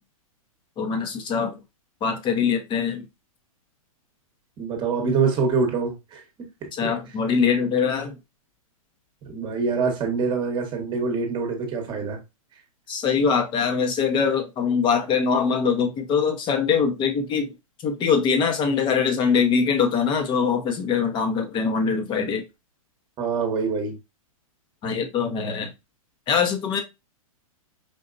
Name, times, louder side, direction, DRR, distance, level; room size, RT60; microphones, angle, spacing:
voice 1, 0.8-1.6 2.0-3.0 6.7-8.2 12.9-17.5 17.8-22.4 24.8-25.7 26.3-26.8, left 6 dB, 25° left, 1.1 m, -23 dB
voice 2, 4.6-6.2 6.6-6.9 9.2-12.2 23.2-24.0, right 5 dB, 25° right, 1.3 m, -25 dB
5.3 x 2.7 x 2.6 m
hypercardioid pair, 125°, 18 cm